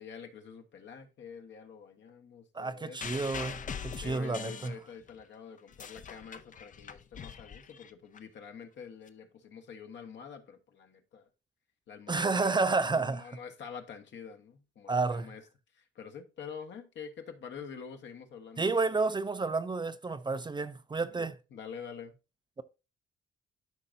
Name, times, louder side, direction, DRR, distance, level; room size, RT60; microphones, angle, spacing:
voice 1, 0.0-3.2 3.7-11.3 11.9-15.4 15.7-18.8 21.1-22.2, left 6 dB, 65° left, 1.5 m, -47 dB
voice 2, 2.5-4.7 12.1-13.4 14.9-15.3 18.6-21.4, right 3 dB, 20° right, 0.6 m, -30 dB
sound 1, 3.0-5.2 5.6-8.2 9.1-9.2, left 7 dB, 40° left, 0.7 m, -42 dB
12.5 x 5.1 x 2.7 m
cardioid pair, 90°, 20 cm